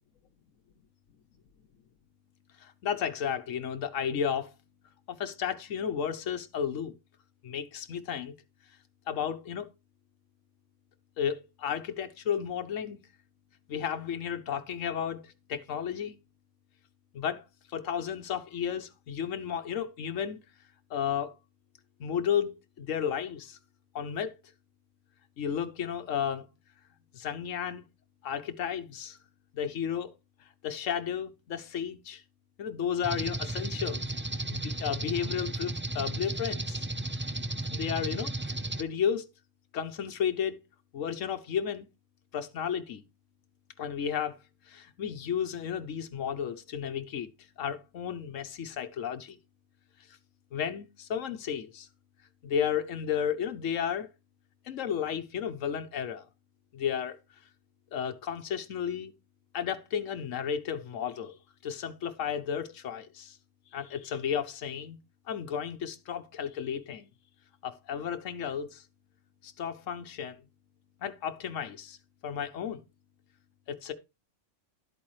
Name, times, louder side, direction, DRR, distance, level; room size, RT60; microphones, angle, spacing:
voice 1, 2.6-4.5 5.1-6.9 7.4-8.3 9.1-9.7 11.2-13.0 13.7-16.2 17.1-17.4 17.7-20.4 20.9-21.3 22.0-23.6 23.9-24.4 25.4-26.4 27.1-27.8 28.2-29.2 29.5-30.1 30.4-32.2 32.6-34.0 34.5-36.9 37.7-38.3 38.8-39.3 39.7-40.6 40.9-41.9 42.3-43.0 43.8-44.4 44.7-47.3 47.6-49.4 50.1-50.2 50.5-51.9 52.4-54.1 54.6-56.3 56.7-57.2 57.9-59.1 59.5-61.4 61.6-63.4 63.7-65.0 65.3-67.1 67.6-68.8 69.4-70.4 71.0-72.0 72.2-72.8 73.7-73.9, left 8 dB, 80° left, 1.2 m, -33 dB
sound 1, 33.0-38.8, right 2 dB, 15° right, 0.3 m, -34 dB
12.0 x 8.6 x 3.2 m
omnidirectional pair, 1.3 m